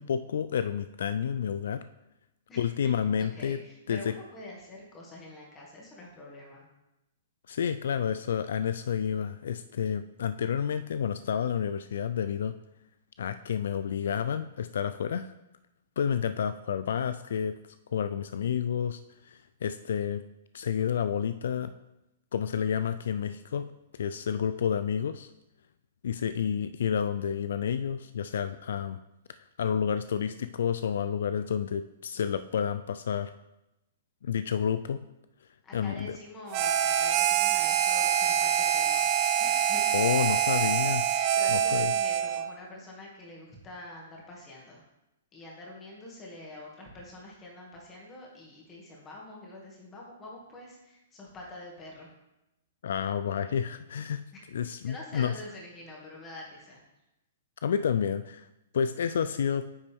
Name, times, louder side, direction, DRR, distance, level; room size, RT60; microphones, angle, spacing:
voice 1, 0.0-1.8 2.6-3.6 3.9-4.1 7.5-12.5 13.2-15.3 16.0-17.5 17.9-20.2 20.5-21.7 22.3-23.7 23.9-25.3 26.0-29.0 29.6-33.3 34.2-35.0 35.7-36.2 39.9-41.0 41.5-41.9 52.8-54.2 54.5-55.3 57.6-58.5 58.7-59.6, left 8 dB, 75° left, 11 dB, 0.3 m, -30 dB
voice 2, 2.5-2.9 3.2-6.6 35.6-39.1 39.4-40.0 41.3-44.8 45.3-52.1 54.3-54.4 54.8-56.8, left 1 dB, 20° left, -3 dB, 2.2 m, -46 dB
Harmonica, 36.5-42.5, right 9 dB, 35° right, 0.5 m, -25 dB
9.4 x 5.3 x 3.6 m, 0.91 s
hypercardioid pair, 145°, 0 cm